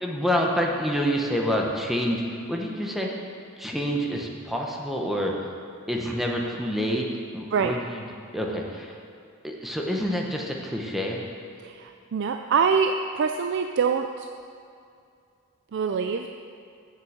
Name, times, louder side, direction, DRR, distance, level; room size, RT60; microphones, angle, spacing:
voice 1, 0.0-2.2 2.5-3.1 3.6-5.3 5.9-7.1 7.3-8.0 8.3-9.0 9.4-11.2, equal, ahead, -1 dB, 0.9 m, -27 dB
voice 2, 11.6-14.3 15.7-16.3, right 6 dB, 55° right, 5 dB, 0.4 m, -25 dB
7.5 x 6.6 x 7.8 m, 2.4 s
head